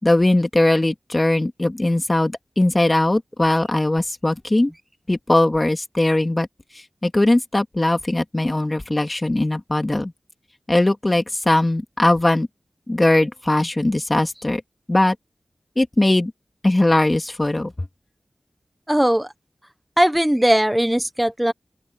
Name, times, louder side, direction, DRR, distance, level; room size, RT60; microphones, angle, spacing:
voice 1, 0.0-4.7 5.1-6.5 7.0-10.1 10.7-12.5 12.9-14.6 14.9-15.2 15.8-16.3 16.6-17.7, left 1 dB, 30° left, 2.5 m, -19 dB
voice 2, 18.9-19.3 20.0-21.5, equal, 10° right, 1.2 m, -18 dB
open air
cardioid pair, 45°, 0 cm